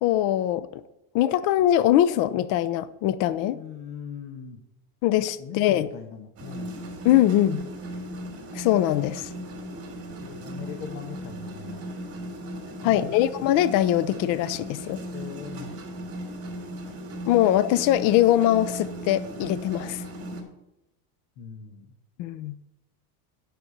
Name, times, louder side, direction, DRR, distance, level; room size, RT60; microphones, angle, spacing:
voice 1, 0.0-0.8 1.1-3.6 5.0-5.9 7.0-7.6 8.5-9.3 12.8-15.0 17.3-20.0 22.2-22.6, left 12 dB, 45° left, 15 dB, 0.5 m, -22 dB
voice 2, 3.5-4.6 5.4-6.8 10.2-11.9 12.8-13.1 15.1-15.8 21.4-21.9, left 7 dB, 65° left, 4 dB, 1.4 m, -40 dB
sound 1, 6.4-20.4, right 1 dB, 30° right, 2.6 m, -37 dB
9.8 x 5.9 x 6.6 m, 0.90 s
supercardioid pair, 140°, 49 cm